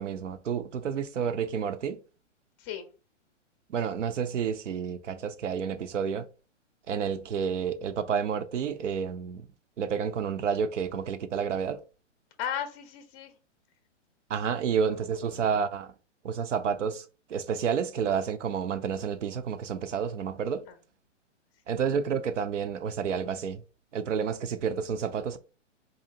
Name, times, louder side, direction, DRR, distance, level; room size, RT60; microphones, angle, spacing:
voice 1, 0.0-2.0 3.7-6.3 6.9-9.5 9.8-11.8 14.3-15.9 16.2-17.0 17.3-20.6 21.7-23.6 23.9-25.4, right 7 dB, 75° right, 0.7 m, -30 dB
voice 2, 2.6-2.9 12.4-13.4 14.8-15.4 20.7-20.8, left 9 dB, 20° left, 0.6 m, -37 dB
4.0 x 2.8 x 2.7 m
hypercardioid pair, 125°, 37 cm